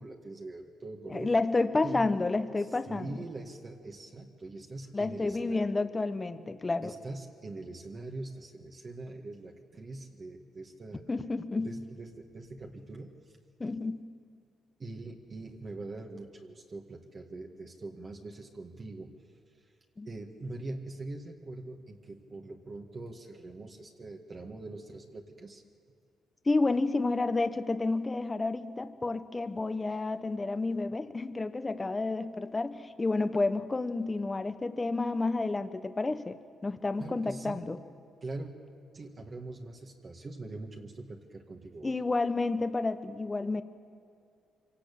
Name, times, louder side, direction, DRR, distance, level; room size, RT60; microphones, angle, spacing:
voice 1, 0.0-1.4 1.8-2.1 2.6-5.7 6.8-11.1 11.6-13.4 14.8-19.1 19.5-19.7 20.0-25.6 37.0-37.6 38.2-38.5 38.9-42.0, right 2 dB, 35° right, 1 dB, 2.0 m, -43 dB
voice 2, 1.1-3.1 4.9-6.9 11.1-11.8 13.6-14.1 20.0-20.1 26.5-37.8 41.8-43.6, left 3 dB, 20° left, 10 dB, 1.1 m, -30 dB
25.0 x 17.5 x 8.7 m, 2.4 s
cardioid pair, 90°, 0 cm